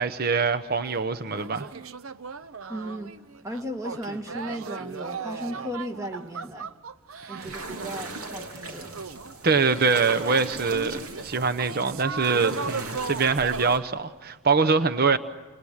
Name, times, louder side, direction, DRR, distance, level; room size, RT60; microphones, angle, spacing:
voice 1, 0.0-1.7 7.3-7.5 9.4-15.2, right 4 dB, 45° right, 0.9 m, -24 dB
sound 1, 0.9-1.0 1.2-10.4 10.9-11.2 11.6-13.7, right 5 dB, 70° right, 0.8 m, -37 dB
voice 2, 2.7-3.1 3.4-6.7 7.3-8.9, equal, 15° right, 1.8 m, -35 dB
sound 2, 7.4-13.8, right 2 dB, 85° right, 3.1 m, -38 dB
29.5 x 26.5 x 6.5 m
head